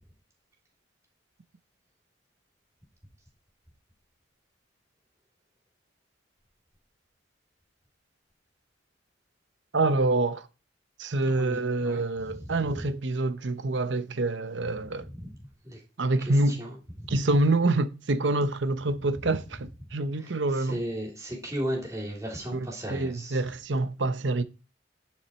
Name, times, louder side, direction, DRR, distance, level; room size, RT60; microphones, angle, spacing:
voice 1, 9.7-10.5 11.0-15.1 16.0-16.6 17.1-20.8 22.5-24.4, right 2 dB, 65° right, 0.8 m, -26 dB
voice 2, 11.2-12.0 12.4-12.6 15.6-15.8 16.3-16.7 20.2-23.4, equal, 15° right, 3.1 m, -35 dB
9.7 x 6.5 x 4.3 m
head